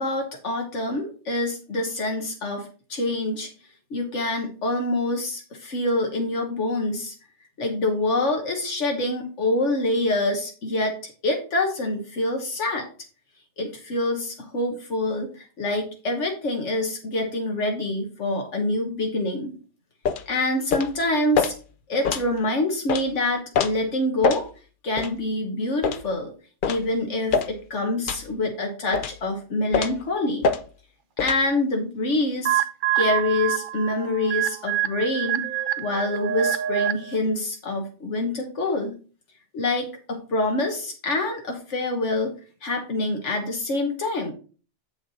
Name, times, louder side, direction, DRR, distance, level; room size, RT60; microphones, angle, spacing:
voice 1, 0.0-3.5 3.9-7.1 7.6-12.9 13.6-19.5 20.3-21.5 21.9-24.5 24.8-26.3 26.7-30.5 31.2-32.6 32.9-35.5 35.8-39.0 39.5-42.3 42.6-44.3, left 2 dB, 80° left, 2 dB, 1.5 m, -26 dB
sound 1, 20.1-20.3 20.7-20.9 21.4-21.5 22.0-22.3 22.9-23.0 23.5-23.7 24.2-24.4 25.0-25.1 25.8-26.0 26.6-26.8 27.3-27.5 28.1-28.3 28.9-29.2 29.7-30.0 30.4-30.6 31.2-31.4, left 6 dB, 55° left, 0.7 m, -24 dB
sound 2, 32.4-37.2, right 12 dB, 60° right, 0.6 m, -26 dB
7.4 x 5.9 x 4.1 m, 0.38 s
omnidirectional pair, 1.2 m